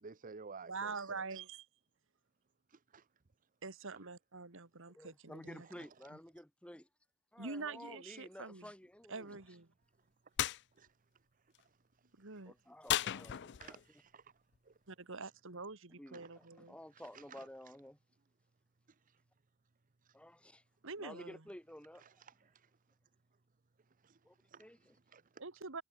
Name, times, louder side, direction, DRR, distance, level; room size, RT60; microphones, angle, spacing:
voice 1, 0.0-1.4 2.7-3.0 10.8-10.9 13.6-14.3 14.7-14.8 16.9-17.4 19.1-19.2 20.0-20.2 22.0-22.7 24.0-24.2 24.5-24.6 25.1-25.2, right 5 dB, 40° right, 0.7 m, -54 dB
voice 2, 0.7-1.7 3.6-5.7 7.4-8.7 9.1-9.7 12.2-12.5 14.9-16.8 20.8-21.4 25.4-25.8, right 4 dB, 65° right, 2.1 m, -45 dB
voice 3, 4.9-6.8 7.3-9.4 12.5-13.8 15.9-18.0 20.1-20.6 21.0-22.0 24.2-25.0, left 1 dB, 5° left, 1.7 m, -53 dB
sound 1, 10.4-10.6 12.9-13.8, left 11 dB, 55° left, 0.5 m, -35 dB
head